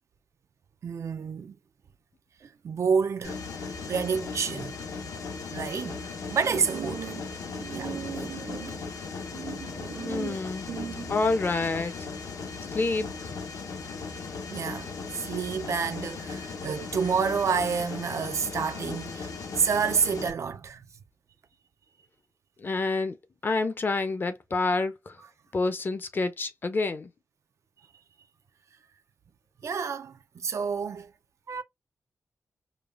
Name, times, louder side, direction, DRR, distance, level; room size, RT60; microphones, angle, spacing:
voice 1, 0.8-1.6 2.4-5.1 5.5-6.0 6.3-8.8 9.3-10.4 10.7-11.1 14.5-20.8 29.6-31.1 31.5-31.6, right 6 dB, 60° right, 0.4 m, -30 dB
Mechanisms, 3.2-20.3, left 4 dB, 80° left, 0.7 m, -37 dB
voice 2, 10.0-10.6 11.1-11.9 12.7-13.6 22.6-23.2 23.4-25.2 25.5-27.1, left 3 dB, 35° left, 0.5 m, -28 dB
5.0 x 2.2 x 2.4 m
wide cardioid pair, 155°, 6 cm